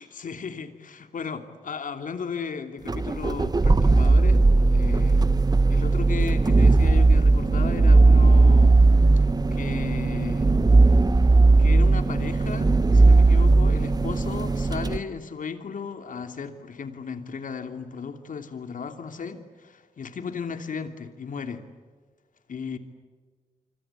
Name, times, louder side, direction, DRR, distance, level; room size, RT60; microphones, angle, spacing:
voice 1, 0.0-4.4 4.7-5.2 5.7-8.8 9.5-10.5 11.6-21.6 22.5-22.8, left 5 dB, 70° left, 8 dB, 2.9 m, -35 dB
sound 1, 2.9-15.0, right 3 dB, 30° right, 1.1 m, -18 dB
27.5 x 25.5 x 8.4 m, 1.5 s
cardioid pair, 55°, 14 cm